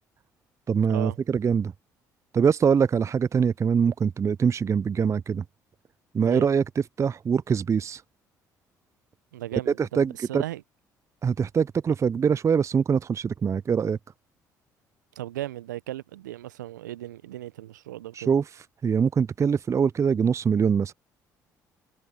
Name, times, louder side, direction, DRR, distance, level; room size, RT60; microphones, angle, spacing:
voice 1, 0.7-1.7 2.3-5.4 6.1-6.6 7.0-8.0 9.8-10.4 11.2-14.0 18.2-18.4 18.8-20.9, right 6 dB, 30° right, 0.4 m, -23 dB
voice 2, 9.3-10.6 15.2-18.3, right 14 dB, 85° right, 0.8 m, -36 dB
hypercardioid pair, 50°, 10 cm